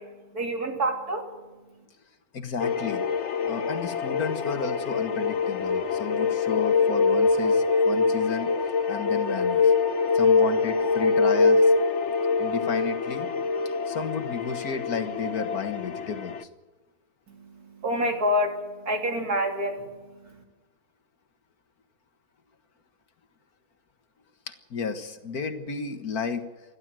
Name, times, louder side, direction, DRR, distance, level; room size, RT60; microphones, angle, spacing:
voice 1, 0.0-1.9 17.3-20.4, equal, 85° right, 2 dB, 3.6 m, -29 dB
voice 2, 2.3-3.0 3.4-8.5 8.9-9.7 10.1-11.7 12.4-13.3 13.9-16.4 24.5-26.5, left 5 dB, 80° left, 7 dB, 2.1 m, -32 dB
sound 1, 2.6-16.4, left 4 dB, 55° left, 1.1 m, -24 dB
29.5 x 12.0 x 7.7 m, 1.2 s
omnidirectional pair, 1.6 m